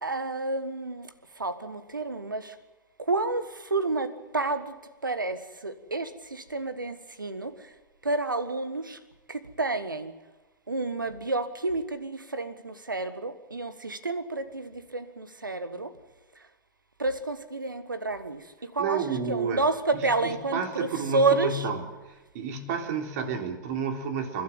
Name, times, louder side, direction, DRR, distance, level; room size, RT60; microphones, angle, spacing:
voice 1, 0.0-1.1 1.4-2.6 3.0-4.7 5.0-7.7 8.0-9.0 9.3-10.1 10.7-15.9 16.4-16.5 17.0-21.6, right 3 dB, 85° right, 12 dB, 1.7 m, -30 dB
voice 2, 18.8-19.6 20.2-21.8 22.3-24.4, right 5 dB, 55° right, 6 dB, 3.5 m, -30 dB
29.0 x 12.0 x 9.1 m, 1.2 s
figure-of-eight pair, 95°, 10 cm